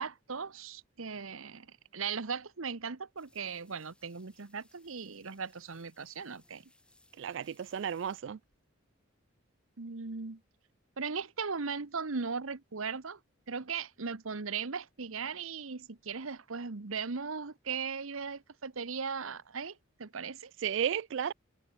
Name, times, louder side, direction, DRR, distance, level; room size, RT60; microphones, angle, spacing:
voice 1, 0.0-1.7 1.9-6.6 9.8-10.4 11.0-13.2 13.5-20.5, right 5 dB, 80° right, 1.1 m, -38 dB
sound 1, 3.2-8.7, left 2 dB, 5° left, 2.9 m, -67 dB
voice 2, 7.2-8.4 20.6-21.3, right 8 dB, 60° right, 0.3 m, -33 dB
head